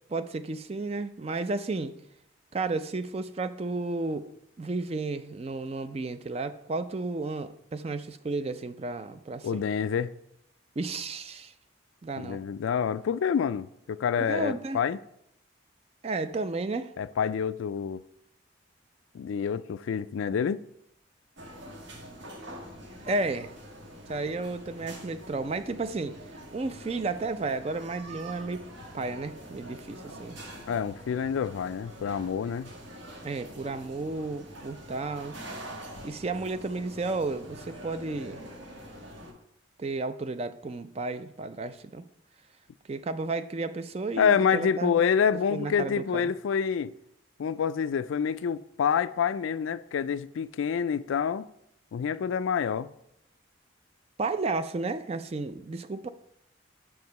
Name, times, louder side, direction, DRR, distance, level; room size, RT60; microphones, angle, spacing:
voice 1, 0.1-2.0 2.5-9.6 10.8-11.5 12.0-12.4 14.2-14.8 16.0-16.9 23.0-23.6 24.1-28.7 28.9-30.4 33.2-35.4 36.0-38.4 39.8-42.0 42.9-44.9 45.5-46.3 54.2-56.1, right 3 dB, 30° right, 0.4 m, -33 dB
voice 2, 9.4-10.1 12.2-15.0 17.0-18.0 19.1-20.6 30.7-32.7 44.2-46.9 47.4-51.5 51.9-52.9, left 7 dB, 80° left, 0.3 m, -27 dB
sound 1, 21.4-39.3, equal, 65° right, 1.4 m, -45 dB
7.4 x 4.7 x 5.3 m
head